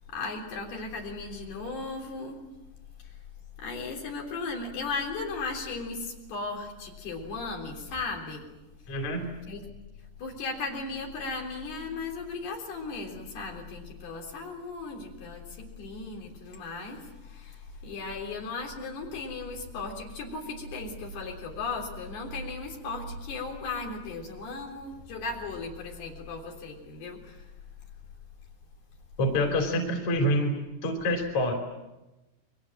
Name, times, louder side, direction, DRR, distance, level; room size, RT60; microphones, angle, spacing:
voice 1, 0.1-2.4 3.0-3.1 3.6-8.5 9.5-9.6 10.2-27.4, left 3 dB, 75° left, 0 dB, 5.8 m, -36 dB
voice 2, 8.9-9.5 29.2-30.5 30.8-31.5, left 1 dB, 45° left, 4 dB, 4.3 m, -26 dB
29.5 x 23.5 x 7.6 m, 1.0 s
omnidirectional pair, 4.6 m